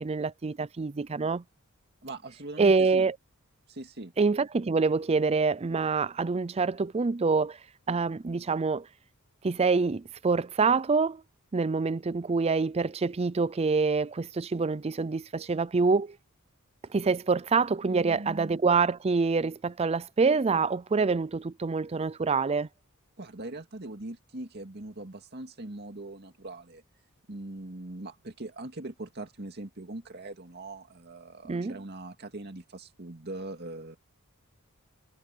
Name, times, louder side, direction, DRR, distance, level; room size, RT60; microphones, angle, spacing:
voice 1, 0.0-1.4 2.6-3.1 4.2-7.6 7.9-8.9 9.4-11.2 11.5-16.2 16.9-22.7 31.5-31.7, right 4 dB, 30° right, 0.5 m, -26 dB
voice 2, 2.0-3.1 3.7-4.1 17.9-18.6 23.2-26.8 27.3-34.0, right 2 dB, 50° right, 2.2 m, -41 dB
head